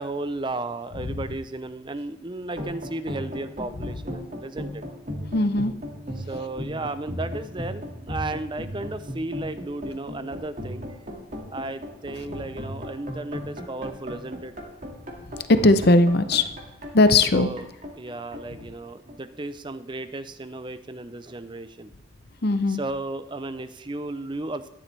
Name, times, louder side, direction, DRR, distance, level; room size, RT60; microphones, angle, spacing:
voice 1, 0.0-4.8 6.2-11.0 11.5-14.5 17.3-17.7 18.0-21.9 22.7-24.7, right 2 dB, 25° right, 12 dB, 0.6 m, -34 dB
sound 1, 2.5-19.4, equal, 40° right, 2.1 m, -37 dB
voice 2, 5.3-5.7 15.6-16.5 16.9-17.5 22.4-22.8, left 2 dB, 50° left, 11 dB, 0.7 m, -18 dB
14.0 x 11.0 x 3.4 m, 0.90 s
head